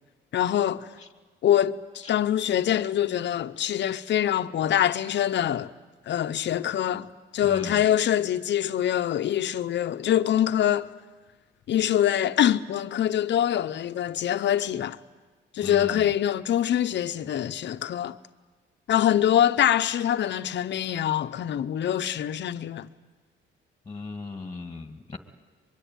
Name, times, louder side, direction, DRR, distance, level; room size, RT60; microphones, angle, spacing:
voice 1, 0.3-0.9 1.4-5.7 6.1-7.1 7.3-10.9 11.7-15.0 15.5-18.2 18.9-22.9, left 11 dB, 65° left, 0.9 m, -24 dB
voice 2, 7.4-7.8 15.6-16.1 23.9-25.2, left 3 dB, 20° left, 2.0 m, -37 dB
23.5 x 23.0 x 9.2 m
cardioid pair, 90°, 20 cm